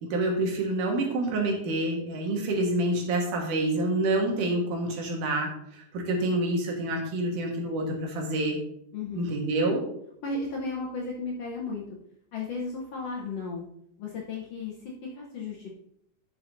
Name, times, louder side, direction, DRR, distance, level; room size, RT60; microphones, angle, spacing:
voice 1, 0.0-8.6 9.1-9.8, right 2 dB, 70° right, 1 dB, 2.9 m, -27 dB
voice 2, 8.9-9.3 10.2-11.9 12.3-13.6 14.0-15.7, left 3 dB, 65° left, -2 dB, 1.6 m, -34 dB
11.0 x 6.8 x 2.6 m, 0.72 s
omnidirectional pair, 3.9 m